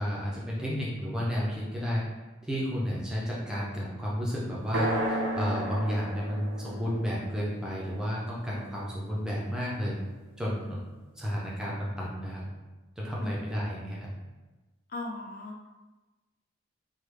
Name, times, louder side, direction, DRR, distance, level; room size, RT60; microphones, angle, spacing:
voice 1, 0.0-2.0 2.4-10.0 10.4-10.8 11.2-12.4 13.0-14.1, equal, 5° right, -6 dB, 0.6 m, -32 dB
sound 1, 4.7-8.7, right 1 dB, 85° right, 0.6 m, -33 dB
voice 2, 14.9-15.7, left 2 dB, 45° left, 1 dB, 0.5 m, -38 dB
3.4 x 2.3 x 3.3 m, 1.2 s
head